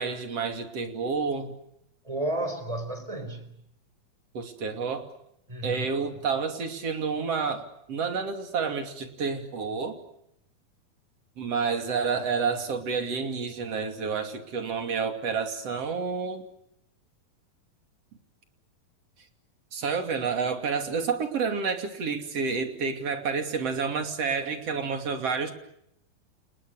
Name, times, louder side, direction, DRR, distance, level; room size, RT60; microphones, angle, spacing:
voice 1, 0.0-1.5 4.3-5.1 5.6-10.0 11.4-16.5 19.7-25.5, right 5 dB, 45° right, 6 dB, 3.5 m, -29 dB
voice 2, 2.0-3.6 5.5-6.1, right 1 dB, 10° right, 8 dB, 4.3 m, -33 dB
30.0 x 29.5 x 6.6 m, 0.78 s
omnidirectional pair, 4.2 m